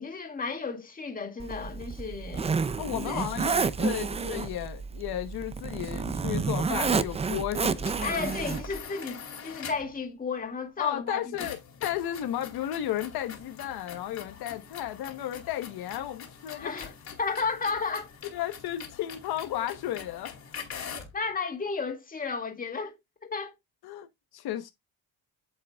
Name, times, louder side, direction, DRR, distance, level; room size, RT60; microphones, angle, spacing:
voice 1, 0.0-2.5 3.1-3.3 8.0-11.2 16.5-16.9 17.2-18.1 21.0-23.0 23.2-23.5, left 4 dB, 20° left, 2.0 m, -33 dB
Zipper (clothing), 1.4-8.8, right 5 dB, 15° right, 0.4 m, -30 dB
voice 2, 2.8-8.2 10.8-16.9 18.3-20.4 23.8-24.1 24.3-24.7, left 12 dB, 80° left, 1.1 m, -34 dB
sound 1, 7.8-10.0 11.4-21.2, left 7 dB, 45° left, 2.5 m, -43 dB
8.6 x 7.6 x 2.3 m
cardioid pair, 150°, 37 cm